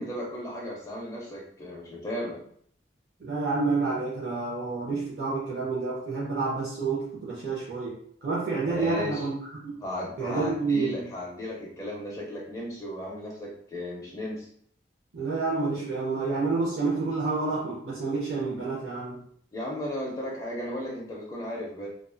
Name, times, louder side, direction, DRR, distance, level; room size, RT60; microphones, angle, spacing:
voice 1, 0.0-2.4 8.6-9.3 9.8-14.5 19.5-21.9, left 1 dB, 20° left, -3 dB, 0.4 m, -35 dB
voice 2, 3.2-9.3 9.6-9.7 10.2-11.1 15.1-19.2, right 3 dB, 60° right, -7 dB, 0.6 m, -29 dB
2.3 x 2.3 x 2.4 m, 0.63 s
head